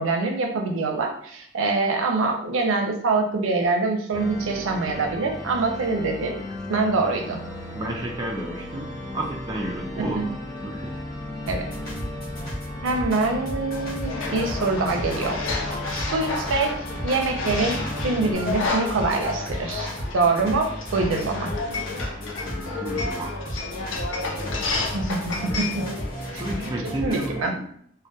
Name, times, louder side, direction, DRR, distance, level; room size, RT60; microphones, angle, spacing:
voice 1, 0.0-6.4 6.7-7.4 10.0-10.3 11.5-11.7 12.8-16.7 17.0-21.5 24.9-25.9 26.3-26.4 27.0-27.5, right 3 dB, 85° right, 2 dB, 0.5 m, -25 dB
sound 1, 4.1-18.4, left 1 dB, 15° left, 1.1 m, -36 dB
voice 2, 7.7-8.9 9.1-10.2 10.6-10.9 22.4-23.3 26.4-27.7, right 1 dB, 20° right, -1 dB, 0.3 m, -31 dB
sound 2, 11.5-27.5, equal, 50° left, 0.9 m, -34 dB
sound 3, 14.0-26.7, left 3 dB, 75° left, 0.5 m, -31 dB
2.7 x 2.1 x 2.2 m, 0.65 s
head